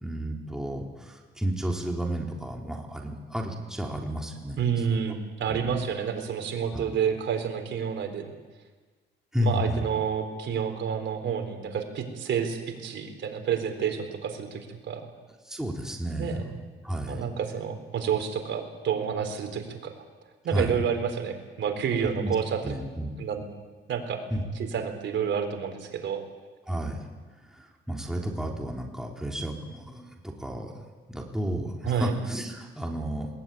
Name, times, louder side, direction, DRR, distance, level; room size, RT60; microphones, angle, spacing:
voice 1, 0.0-4.6 4.9-5.0 5.5-5.8 6.7-6.9 9.3-9.9 15.4-16.4 16.8-17.2 20.5-20.8 22.0-22.4 22.6-23.1 24.3-24.4 26.7-27.0 27.4-30.7 31.1-33.3, equal, 5° right, 0 dB, 3.7 m, -32 dB
voice 2, 4.6-8.3 9.4-15.1 16.2-16.4 17.1-19.9 20.4-22.6 23.2-23.5 23.9-24.2 24.6-26.2 31.8-32.1, right 7 dB, 65° right, 5 dB, 4.0 m, -29 dB
21.5 x 19.5 x 9.3 m, 1.3 s
cardioid pair, 90°, 20 cm